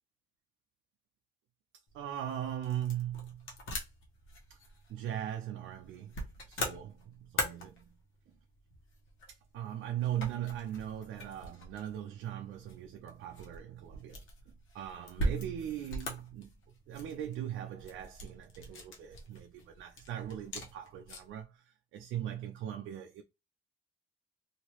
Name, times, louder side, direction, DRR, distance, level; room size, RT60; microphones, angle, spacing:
sound 1, 1.9-21.4, equal, 85° left, 1.1 m, -42 dB
voice 1, 1.9-3.5 4.9-6.1 6.5-7.9 9.5-14.2 14.7-16.5 16.9-21.6 21.9-23.2, right 11 dB, 80° right, 0.4 m, -39 dB
3.0 x 2.7 x 2.9 m
cardioid pair, 90°, 20 cm